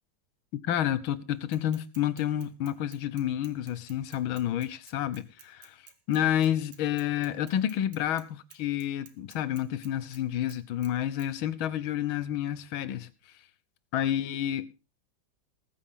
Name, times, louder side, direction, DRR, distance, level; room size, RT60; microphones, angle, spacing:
voice 1, 0.6-5.8 6.1-13.1 13.9-14.7, left 11 dB, 70° left, 1.7 m, -29 dB
Bicycle / Mechanisms, 1.5-8.3 8.5-10.2 10.5-10.9 11.2-11.3, right 8 dB, 90° right, 2.4 m, -54 dB
19.5 x 9.2 x 3.7 m
omnidirectional pair, 2.4 m